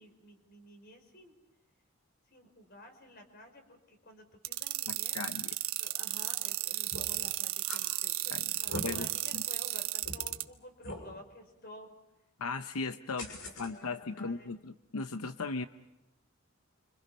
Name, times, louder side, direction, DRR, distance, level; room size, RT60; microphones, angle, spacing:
voice 1, 0.0-1.3 2.3-5.3 5.8-11.9 13.4-14.6, left 1 dB, 45° left, 5 dB, 5.0 m, -52 dB
sound 1, 4.4-10.4, right 15 dB, 80° right, 1.3 m, -33 dB
voice 2, 4.9-5.5 8.3-8.4 8.8-9.1 9.3-9.4 12.4-13.3 13.6-15.7, left 4 dB, 90° left, 9 dB, 0.8 m, -37 dB
sound 2, 6.9-7.2 7.6-7.8 8.5-8.8 9.4-9.5 10.0-10.2 10.8-11.0 13.2-13.7, left 1 dB, 70° left, 6.3 m, -40 dB
29.5 x 26.0 x 5.5 m, 0.92 s
head